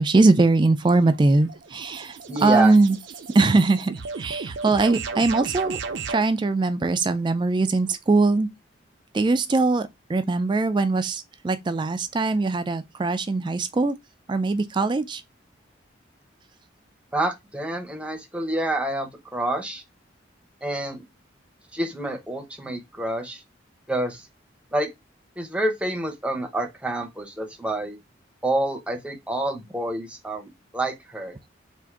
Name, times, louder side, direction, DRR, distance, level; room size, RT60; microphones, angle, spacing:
voice 1, 0.0-3.0 3.3-5.8 6.1-8.5 9.1-14.0 14.3-15.2, right 3 dB, 25° right, 0.3 m, -21 dB
sound 1, 0.8-6.3, right 4 dB, 70° right, 0.6 m, -35 dB
voice 2, 2.3-2.7 17.1-19.8 20.6-21.0 21.7-23.4 23.9-24.3 24.7-24.9 25.4-28.0 28.4-31.3, right 1 dB, 5° right, 0.7 m, -28 dB
3.6 x 2.5 x 4.5 m
head